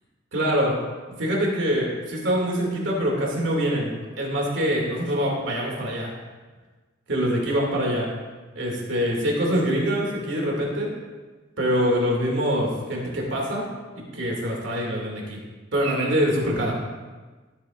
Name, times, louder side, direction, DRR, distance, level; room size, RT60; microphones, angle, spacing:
voice 1, 0.3-0.7 1.2-6.1 7.1-8.1 8.5-10.9 11.6-13.7 13.9-15.4 15.7-16.7, equal, 70° right, -2 dB, 2.5 m, -24 dB
14.5 x 7.9 x 2.6 m, 1.3 s
head